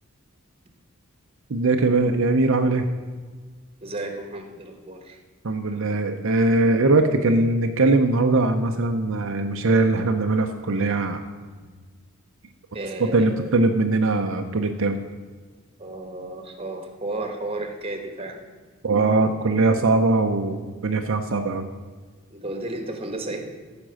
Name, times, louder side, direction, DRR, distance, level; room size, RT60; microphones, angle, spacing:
voice 1, 1.5-2.9 5.4-11.2 13.1-15.0 18.8-21.7, right 2 dB, 65° right, 4 dB, 0.6 m, -21 dB
voice 2, 3.8-5.2 12.7-13.5 15.8-18.4 22.3-23.5, right 2 dB, 25° right, 4 dB, 1.3 m, -33 dB
13.5 x 5.2 x 6.3 m, 1.5 s
head